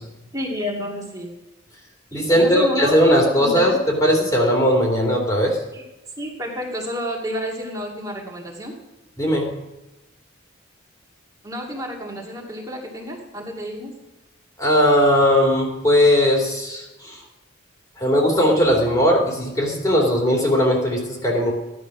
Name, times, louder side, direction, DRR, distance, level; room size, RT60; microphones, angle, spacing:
voice 1, 0.3-1.3 2.3-3.6 5.7-5.8 6.2-8.7 11.4-13.9, equal, 20° right, -3 dB, 2.3 m, -29 dB
voice 2, 2.1-5.6 9.2-9.6 14.6-17.2 18.0-21.5, equal, 20° left, 0 dB, 2.9 m, -18 dB
15.0 x 11.0 x 6.1 m, 1.0 s
head